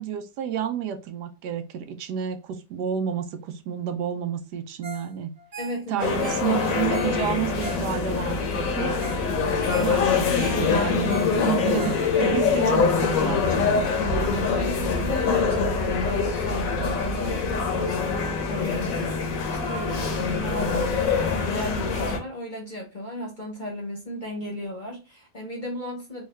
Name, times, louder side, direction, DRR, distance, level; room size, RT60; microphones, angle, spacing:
voice 1, 0.0-5.3 5.9-9.0 9.8-13.9, right 9 dB, 85° right, 1.2 m, -30 dB
Ringtone, 4.8-5.1 5.4-8.3 8.7-8.8 9.0-9.3 9.5-12.4 12.9-13.0, right 2 dB, 50° right, 0.4 m, -40 dB
voice 2, 5.6-6.1 9.7-10.0 14.1-26.2, left 1 dB, 40° left, 0.8 m, -35 dB
sound 1, 6.0-22.2, left 5 dB, 65° left, 1.0 m, -24 dB
3.6 x 2.4 x 3.1 m
omnidirectional pair, 1.8 m